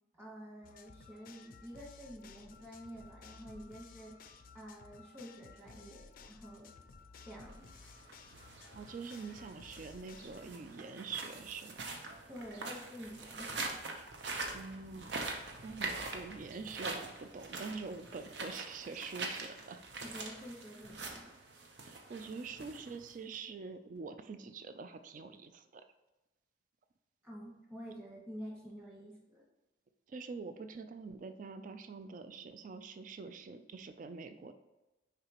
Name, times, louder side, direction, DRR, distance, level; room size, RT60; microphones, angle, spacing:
voice 1, 0.1-6.7 7.2-7.7 12.3-14.0 20.0-21.4 27.2-29.4, equal, 15° right, -5 dB, 1.8 m, -49 dB
sound 1, 0.6-10.5, left 5 dB, 50° left, 0.4 m, -56 dB
sound 2, 7.6-23.3, right 3 dB, 75° right, 0.8 m, -44 dB
voice 2, 8.7-11.8 14.5-15.1 15.6-19.9 21.8-25.8 30.1-34.5, right 4 dB, 45° right, 9 dB, 0.4 m, -45 dB
6.7 x 4.9 x 3.0 m, 1.0 s
head